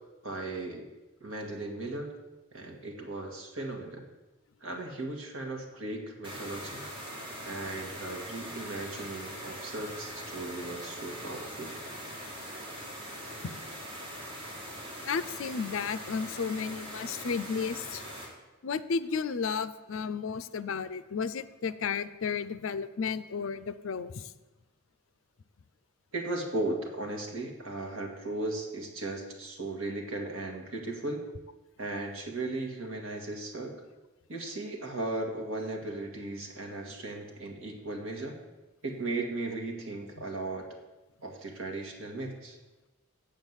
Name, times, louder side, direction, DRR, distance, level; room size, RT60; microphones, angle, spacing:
voice 1, 0.2-0.9 1.2-2.1 2.5-4.0 4.6-6.8 7.5-11.7 26.1-31.2 31.8-33.8 34.3-38.4 38.8-40.6 41.2-42.6, right 2 dB, 70° right, 2 dB, 1.8 m, -36 dB
sound 1, 6.2-18.3, equal, 25° right, 2.3 m, -42 dB
voice 2, 15.1-18.0 18.6-24.1, left 5 dB, 65° left, 14 dB, 0.5 m, -33 dB
8.0 x 7.0 x 7.3 m, 1.1 s
head